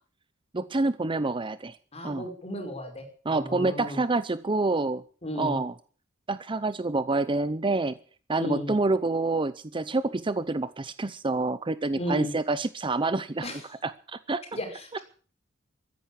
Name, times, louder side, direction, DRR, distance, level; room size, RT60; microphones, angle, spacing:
voice 1, 0.5-1.8 2.0-2.2 3.3-5.0 5.4-5.7 6.3-8.0 8.3-13.5 13.8-14.4, right 3 dB, 25° right, 15 dB, 0.6 m, -27 dB
voice 2, 1.9-4.0 5.2-5.6 8.4-8.7 12.0-12.3 13.4-13.6 14.5-15.0, left 1 dB, 30° left, 5 dB, 5.3 m, -34 dB
14.5 x 10.5 x 8.4 m, 0.42 s
head